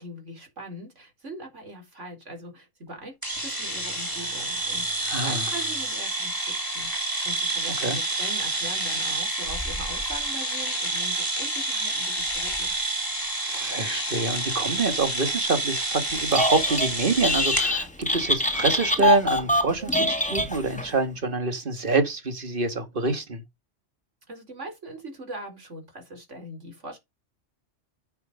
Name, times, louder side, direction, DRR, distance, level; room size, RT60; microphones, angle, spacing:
voice 1, 0.0-12.8 24.3-27.0, right 1 dB, 70° right, 4.5 m, -41 dB
sound 1, 3.2-17.7, right 2 dB, 15° right, 3.1 m, -29 dB
voice 2, 5.1-5.4 7.8-8.0 13.4-23.4, right 3 dB, 45° right, 1.9 m, -26 dB
Telephone, 16.2-16.9 17.2-20.9, left 1 dB, 5° left, 1.4 m, -24 dB
9.3 x 6.2 x 5.3 m
omnidirectional pair, 1.3 m